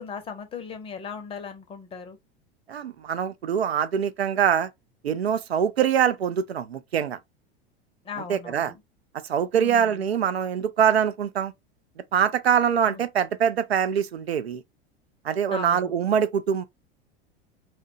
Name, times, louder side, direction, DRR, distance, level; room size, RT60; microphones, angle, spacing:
voice 1, 0.0-2.2 8.0-8.8 9.5-10.1 12.9-13.0 15.5-16.0, left 5 dB, 20° left, 0.6 m, -38 dB
voice 2, 2.7-4.7 5.0-7.2 8.3-8.7 9.3-11.5 12.1-14.6 15.2-16.7, right 8 dB, 80° right, 0.5 m, -24 dB
2.7 x 2.1 x 2.7 m
figure-of-eight pair, 80°, 31 cm